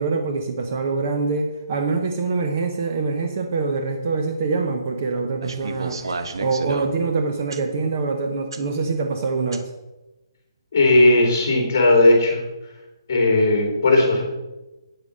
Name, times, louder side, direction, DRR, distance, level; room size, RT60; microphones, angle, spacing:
voice 1, 0.0-6.0 6.4-9.7, right 4 dB, 25° right, 4 dB, 0.7 m, -24 dB
sound 1, 5.4-6.9 7.5-7.6 8.5-8.6 9.5-9.6, right 3 dB, 65° right, 1.1 m, -31 dB
voice 2, 10.7-12.4 13.1-14.2, left 2 dB, 30° left, 1 dB, 3.0 m, -16 dB
8.9 x 8.2 x 5.4 m, 1.1 s
hypercardioid pair, 180°, 3 cm